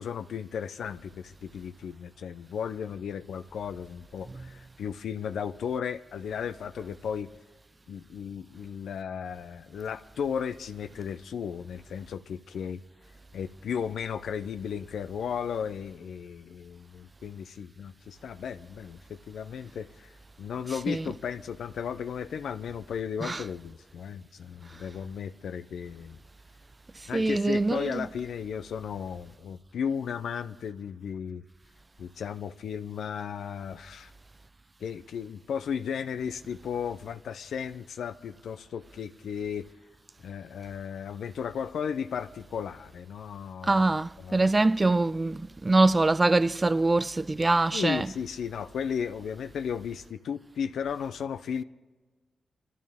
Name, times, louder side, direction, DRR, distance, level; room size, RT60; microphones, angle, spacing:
voice 1, 0.0-7.3 7.9-12.8 13.3-26.2 27.1-31.4 32.0-34.1 34.8-39.7 40.2-43.8 44.2-44.5 47.7-51.6, left 7 dB, 80° left, 0.5 m, -35 dB
voice 2, 27.1-28.1 43.6-48.1, right 2 dB, 25° right, 0.4 m, -24 dB
24.0 x 13.0 x 3.5 m
cardioid pair, 60°, 0 cm